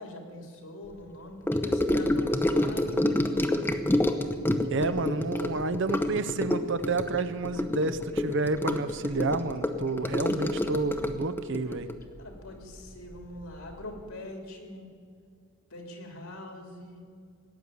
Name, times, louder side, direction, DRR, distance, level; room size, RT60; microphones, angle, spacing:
voice 1, 0.0-3.5 12.2-14.9 15.7-17.0, left 1 dB, 70° left, 3 dB, 3.0 m, -43 dB
Gurgling / Sink (filling or washing) / Trickle dribble, 1.5-13.1 13.4-13.7 14.0-14.1, left 1 dB, 10° left, 0.8 m, -28 dB
voice 2, 4.7-11.9, right 3 dB, 55° right, 12 dB, 0.8 m, -30 dB
18.0 x 8.2 x 9.8 m, 2.2 s
head